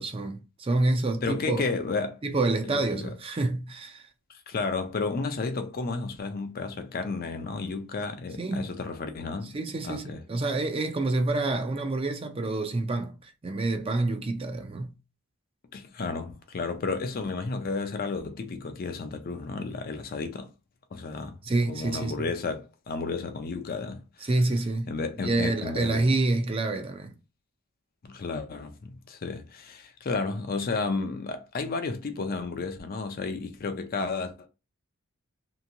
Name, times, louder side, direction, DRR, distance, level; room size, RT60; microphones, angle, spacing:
voice 1, 0.0-1.7 2.2-4.1 8.4-8.7 9.5-15.0 21.4-22.3 24.2-27.2, right 2 dB, 25° right, 0.4 m, -28 dB
voice 2, 1.2-2.2 2.7-3.1 4.3-9.6 9.8-10.2 15.7-20.5 20.9-21.3 21.7-24.3 24.9-26.0 28.0-34.5, left 4 dB, 45° left, 0.5 m, -32 dB
2.9 x 2.6 x 2.5 m
head